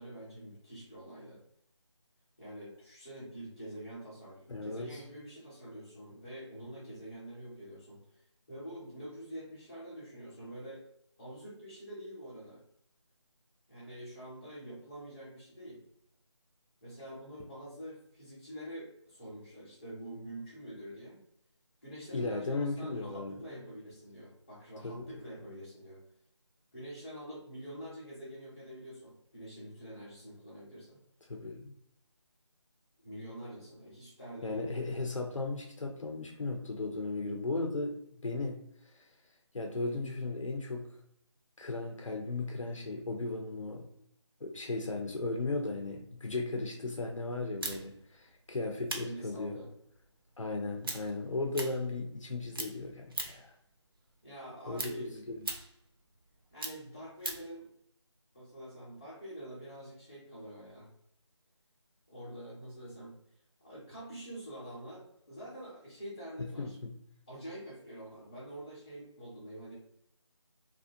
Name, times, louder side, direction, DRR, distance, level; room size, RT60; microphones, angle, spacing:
voice 1, 0.0-1.4 2.4-8.2 8.5-10.8 11.2-12.6 13.7-15.8 16.8-21.2 21.8-26.1 26.7-31.0 33.0-34.9 49.0-49.7 54.2-55.1 56.5-57.7 58.3-60.9 62.1-63.1 63.6-66.8 67.3-69.7, right 1 dB, 15° left, -11 dB, 0.5 m, -46 dB
voice 2, 4.5-5.0 22.1-23.4 24.8-25.0 31.3-31.7 34.4-38.6 38.9-39.0 39.5-40.9 41.6-43.9 44.4-49.6 50.4-53.5 54.7-55.4 66.4-67.0, left 3 dB, 90° left, 2 dB, 0.5 m, -36 dB
sound 1, 47.6-52.3 52.5-53.6 53.9-57.5, right 2 dB, 50° right, 0.4 m, -41 dB
2.5 x 2.1 x 2.5 m, 0.73 s
figure-of-eight pair, 160°, 16 cm